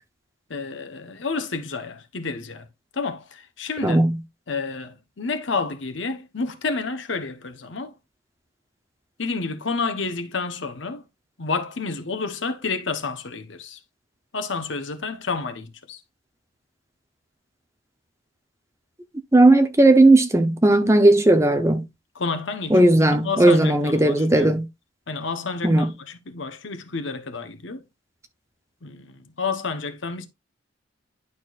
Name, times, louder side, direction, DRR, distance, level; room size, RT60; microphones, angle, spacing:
voice 1, 0.5-2.7 2.9-4.0 4.5-7.9 9.2-11.0 11.4-13.8 14.3-16.0 22.1-24.6 25.1-27.8 28.8-30.3, left 4 dB, 70° left, 1.0 m, -30 dB
voice 2, 3.8-4.2 19.3-21.8 22.7-24.7 25.6-25.9, right 2 dB, 15° right, 0.7 m, -16 dB
11.0 x 4.4 x 2.4 m
head